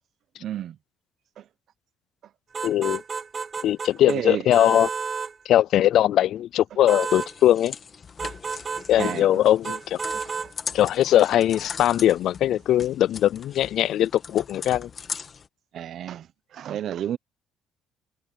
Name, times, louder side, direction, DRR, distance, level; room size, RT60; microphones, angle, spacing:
voice 1, 0.4-0.8 1.4-1.5 4.1-4.4 9.0-9.3 10.1-10.2 15.7-16.3 16.5-17.2, right 10 dB, 60° right, 0.8 m, -30 dB
sound 1, 2.5-4.2 4.5-5.3 6.9-7.3 8.2-9.2 9.6-10.5, right 5 dB, 35° right, 5.3 m, -31 dB
voice 2, 2.6-3.0 3.6-4.9 5.5-7.8 8.9-10.0 10.7-14.9, left 12 dB, 65° left, 0.3 m, -20 dB
sound 2, 6.9-15.5, left 6 dB, 40° left, 1.6 m, -40 dB
cardioid pair, 100°, 0 cm